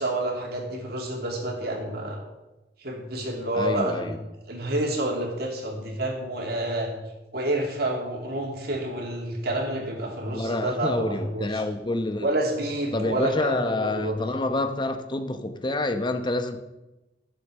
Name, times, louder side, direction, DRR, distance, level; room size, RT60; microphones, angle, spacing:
voice 1, 0.0-2.2 2.8-4.1 4.5-6.9 7.3-11.6 12.2-14.2, right 1 dB, 60° right, 0 dB, 2.8 m, -29 dB
voice 2, 3.5-4.2 10.3-12.3 12.9-16.6, left 2 dB, 25° left, 7 dB, 0.9 m, -28 dB
12.0 x 7.2 x 6.6 m, 1.0 s
head